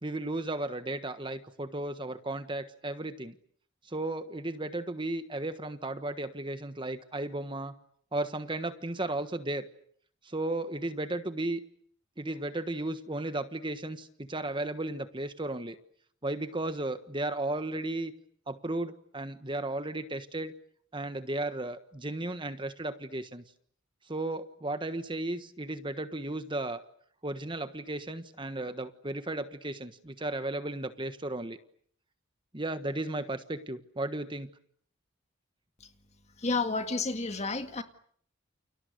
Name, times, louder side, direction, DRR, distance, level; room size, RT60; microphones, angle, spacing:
voice 1, 0.0-3.3 3.8-7.8 8.1-9.7 10.2-11.6 12.2-15.8 16.2-18.1 18.5-20.5 20.9-23.4 24.1-26.8 27.2-31.6 32.5-34.5, right 2 dB, 25° right, 10 dB, 1.4 m, -34 dB
voice 2, 36.4-37.8, left 3 dB, 35° left, 8 dB, 2.0 m, -30 dB
29.5 x 29.0 x 6.7 m, 0.62 s
head